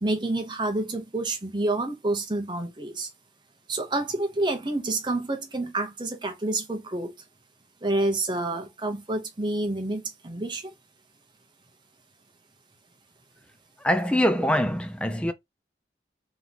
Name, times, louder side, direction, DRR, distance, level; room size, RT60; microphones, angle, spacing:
voice 1, 0.0-3.1 3.7-7.1 7.8-10.7, right 2 dB, 25° right, 0.9 m, -28 dB
voice 2, 13.8-15.3, equal, 5° left, 0.4 m, -24 dB
3.6 x 3.1 x 4.0 m
head